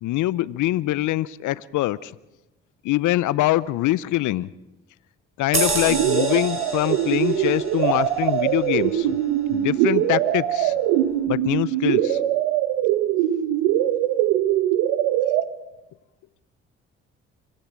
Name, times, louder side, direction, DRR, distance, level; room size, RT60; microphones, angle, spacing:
voice 1, 0.0-2.1 2.8-4.5 5.4-9.2 9.5-10.7 11.3-12.2, left 16 dB, 70° left, 20 dB, 0.7 m, -24 dB
sound 1, 5.5-10.5 10.9-11.1, right 3 dB, 40° right, 5.0 m, -30 dB
sound 2, 5.9-15.4, right 12 dB, 85° right, 1.2 m, -22 dB
26.0 x 16.0 x 7.4 m, 0.97 s
hypercardioid pair, 50°, 31 cm